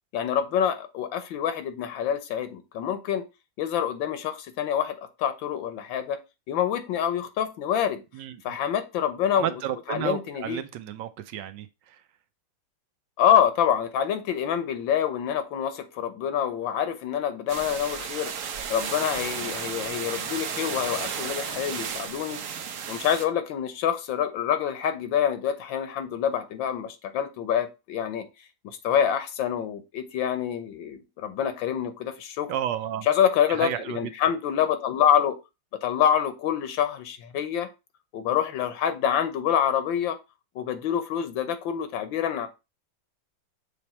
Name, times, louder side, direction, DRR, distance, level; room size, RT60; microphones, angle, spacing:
voice 1, 0.1-3.2 3.6-6.2 6.5-8.0 8.4-9.6 9.9-10.6 13.2-18.3 18.7-22.4 22.9-28.3 28.6-32.5 33.0-35.4 35.7-37.7 38.1-40.2 40.5-42.5, left 9 dB, 85° left, 1.6 m, -26 dB
voice 2, 8.1-8.6 9.3-12.0 32.5-33.1 33.6-34.1, right 11 dB, 75° right, 1.2 m, -32 dB
sound 1, 17.5-23.3, right 7 dB, 60° right, 0.9 m, -33 dB
6.9 x 3.4 x 4.3 m
omnidirectional pair, 2.0 m